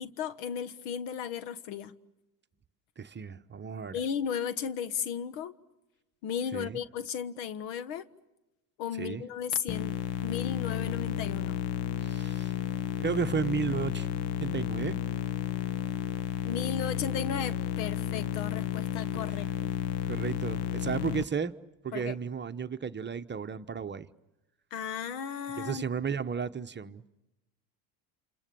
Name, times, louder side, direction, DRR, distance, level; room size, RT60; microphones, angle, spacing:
voice 1, 0.0-1.9 3.9-5.5 6.2-8.0 8.8-11.6 16.4-19.7 21.9-22.2 24.7-25.8, left 7 dB, 75° left, 1.5 m, -35 dB
voice 2, 3.0-4.0 6.5-6.8 9.0-9.2 12.0-12.5 13.0-14.1 14.4-15.0 20.1-21.5 21.8-24.1 25.6-27.1, right 6 dB, 20° right, 1.0 m, -33 dB
sound 1, 9.7-21.2, left 10 dB, 55° left, 1.1 m, -32 dB
29.0 x 27.5 x 6.9 m
supercardioid pair, 85°, 50 cm